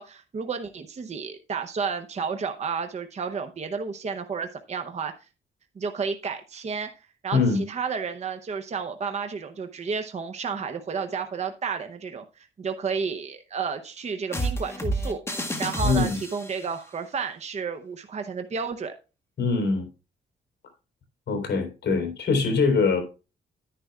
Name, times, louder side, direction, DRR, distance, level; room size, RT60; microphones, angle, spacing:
voice 1, 0.0-5.1 5.8-6.9 7.2-15.2 15.6-18.9, right 5 dB, 35° right, 0.7 m, -31 dB
sound 1, 14.3-16.7, right 1 dB, 15° left, 1.6 m, -29 dB
voice 2, 15.8-16.2 19.4-19.9 21.3-23.0, left 4 dB, 65° left, 3.8 m, -23 dB
11.5 x 10.0 x 2.3 m
cardioid pair, 125°, 19 cm